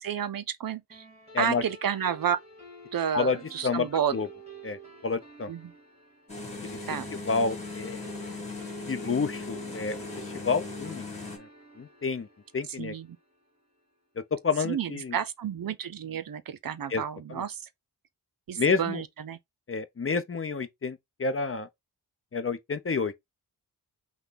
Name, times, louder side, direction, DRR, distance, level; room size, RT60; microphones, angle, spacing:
voice 1, 0.0-1.0 1.4-2.4 2.9-4.2 5.5-5.7 6.9-7.1 12.8-13.2 14.6-17.6 18.5-19.4, right 8 dB, 55° right, 0.6 m, -31 dB
sound 1, 0.9-13.6, right 1 dB, 15° right, 2.9 m, -50 dB
voice 2, 4.6-5.5 6.6-6.8 7.3-8.1 8.9-11.0 11.4-11.5 11.8-12.3 12.5-12.9 14.4-15.2 16.9-17.0 17.3-17.4 18.6-19.0 19.7-21.7 22.3-23.1, left 4 dB, 35° left, 0.7 m, -29 dB
sound 2, 6.3-11.4, left 3 dB, 15° left, 2.2 m, -38 dB
5.8 x 2.3 x 3.8 m
wide cardioid pair, 95°, 40 cm